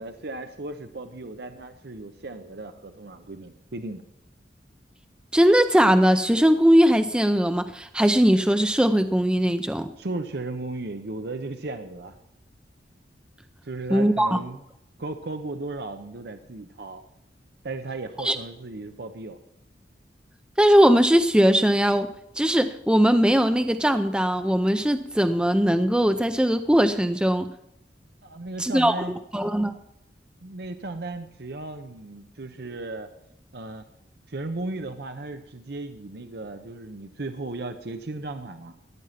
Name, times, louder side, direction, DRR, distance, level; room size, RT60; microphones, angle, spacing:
voice 1, 0.0-4.0 10.0-12.1 13.6-14.6 15.0-17.0 17.6-19.4 28.2-29.2 30.4-33.1 33.5-33.9 34.3-38.8, right 2 dB, 60° right, 8 dB, 0.8 m, -35 dB
voice 2, 5.3-9.9 13.9-14.4 18.2-18.4 20.6-22.1 22.4-27.5 28.6-28.9 29.3-29.7, equal, 5° right, 8 dB, 0.5 m, -20 dB
15.0 x 9.5 x 5.8 m, 0.78 s
head